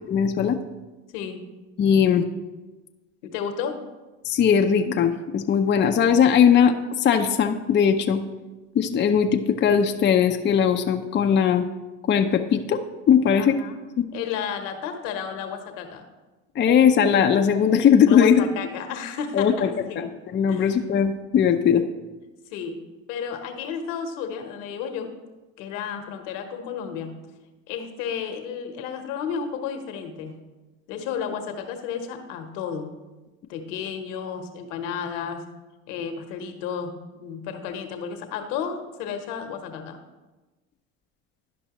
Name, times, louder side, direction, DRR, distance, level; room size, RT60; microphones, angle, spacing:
voice 1, 0.1-0.6 1.8-2.3 4.2-8.2 8.7-11.7 12.1-12.8 13.1-13.6 16.6-18.4 19.3-19.7 20.0-21.8, left 7 dB, 30° left, 5 dB, 0.5 m, -19 dB
voice 2, 3.2-3.8 13.4-13.8 14.1-16.0 18.1-20.0 20.5-20.8 22.5-22.8 23.1-25.1 25.6-27.1 27.7-30.3 30.9-32.9 33.5-35.4 35.9-40.0, left 7 dB, 75° left, 6 dB, 1.1 m, -32 dB
11.0 x 5.3 x 3.0 m, 1.2 s
supercardioid pair, 85°, 37 cm